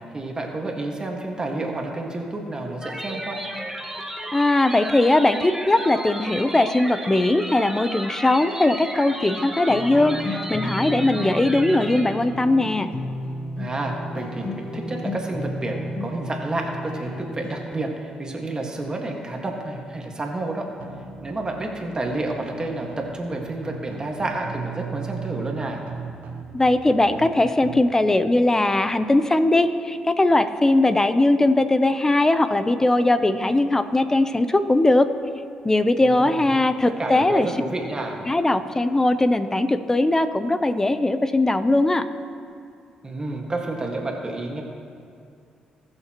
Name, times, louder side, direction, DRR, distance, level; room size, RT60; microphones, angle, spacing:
voice 1, 0.1-3.4 13.6-20.7 21.2-25.8 36.0-36.4 37.0-38.2 43.0-44.6, right 2 dB, 30° right, 0 dB, 1.7 m, -30 dB
sound 1, 2.8-12.0, right 1 dB, 10° right, 1.4 m, -34 dB
voice 2, 4.3-12.9 26.5-35.1 35.6-37.5 38.3-42.1, left 2 dB, 20° left, 11 dB, 0.7 m, -20 dB
sound 2, 9.7-17.7, left 1 dB, 50° left, 1.1 m, -32 dB
sound 3, 20.8-27.8, right 6 dB, 75° right, 1.1 m, -37 dB
20.0 x 6.8 x 3.0 m, 2.4 s
supercardioid pair, 65°, 3 cm